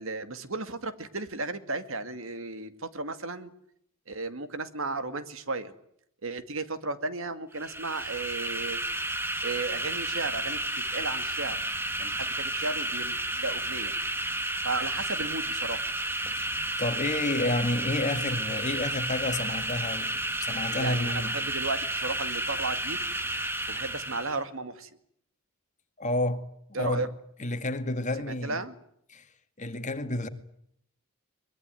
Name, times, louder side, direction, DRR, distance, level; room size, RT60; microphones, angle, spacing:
voice 1, 0.0-3.5 4.1-5.7 6.2-8.8 9.4-10.6 10.9-11.6 12.0-13.9 14.6-15.9 20.7-23.0 23.7-24.9 26.7-27.1 28.3-28.7, right 3 dB, 65° right, 2.2 m, -34 dB
sound 1, 7.5-24.4, right 1 dB, 10° right, 2.0 m, -32 dB
voice 2, 16.4-21.3 26.0-26.4 26.7-27.1 27.4-28.6 29.1-29.2 29.6-30.3, left 2 dB, 35° left, 2.2 m, -30 dB
23.5 x 22.5 x 9.3 m
head